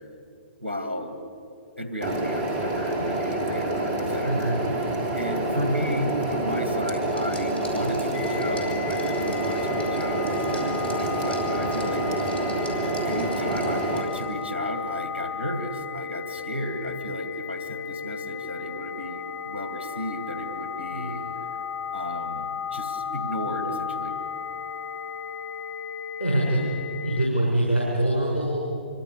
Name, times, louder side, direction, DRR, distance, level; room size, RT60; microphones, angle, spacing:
voice 1, 0.6-1.2 1.8-12.0 13.0-21.2 21.9-24.2, equal, 85° right, 6 dB, 2.8 m, -34 dB
sound 1, 2.0-14.0, right 2 dB, 35° right, 3.5 m, -27 dB
voice 2, 4.2-4.6 20.9-21.2 26.2-26.7 27.0-28.9, right 1 dB, 90° left, -4 dB, 5.9 m, -25 dB
Liquid, 7.1-14.5, equal, 75° left, 6.6 m, -46 dB
sound 2, 8.1-27.3, left 7 dB, 25° left, 1.3 m, -34 dB
26.0 x 25.0 x 6.6 m, 2.4 s
figure-of-eight pair, 115°, 6 cm